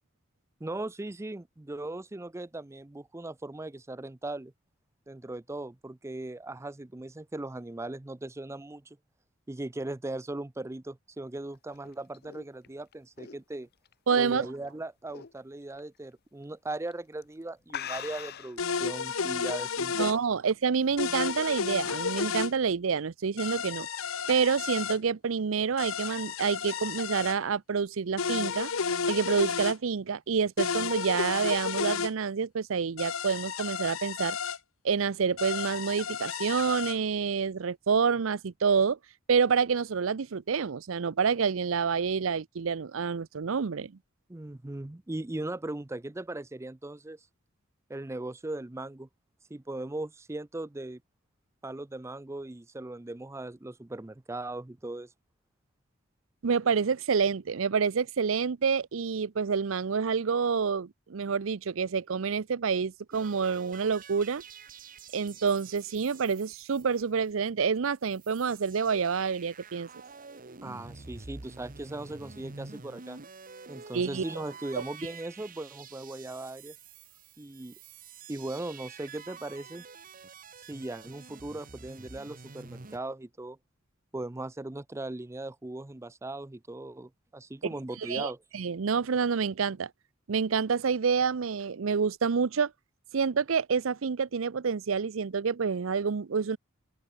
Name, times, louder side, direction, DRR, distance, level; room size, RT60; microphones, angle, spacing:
voice 1, 0.6-4.5 5.1-9.0 9.5-13.7 14.2-20.1 44.3-47.2 47.9-49.1 49.5-51.0 51.6-55.1 70.6-73.2 73.7-76.7 77.4-77.8 78.3-79.8 80.6-83.6 84.1-88.4, right 2 dB, 15° right, 0.5 m, -38 dB
sound 1, 11.6-14.7 15.1-15.4 15.8-15.9 16.7-16.9 17.2-17.3 17.7-18.6, left 9 dB, 50° left, 0.7 m, -41 dB
voice 2, 14.1-14.5 19.9-23.9 24.3-28.7 29.1-34.4 34.8-39.0 39.3-43.9 56.4-64.4 65.1-69.9 73.9-74.2 88.0-89.9 90.3-92.7 93.1-96.6, right 6 dB, 70° right, 0.6 m, -28 dB
sound 2, 18.6-20.2 21.0-22.5 23.4-25.0 25.8-27.4 28.2-29.8 30.6-32.1 33.0-34.6 35.4-37.0, left 6 dB, 85° left, 0.9 m, -32 dB
sound 3, 63.1-67.5 67.8-67.9 68.0-83.0, right 4 dB, 45° right, 1.4 m, -48 dB
open air
head